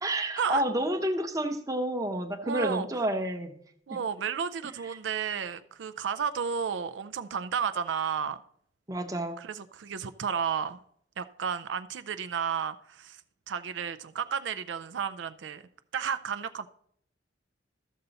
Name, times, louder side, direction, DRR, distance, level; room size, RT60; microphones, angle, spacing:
voice 1, 0.0-3.6 8.9-9.4, right 1 dB, 20° right, 6 dB, 0.8 m, -29 dB
voice 2, 2.4-2.9 3.9-8.4 9.4-10.8 11.2-13.2 13.5-15.6 15.9-16.7, right 7 dB, 75° right, 13 dB, 0.4 m, -32 dB
13.0 x 6.7 x 4.0 m, 0.65 s
head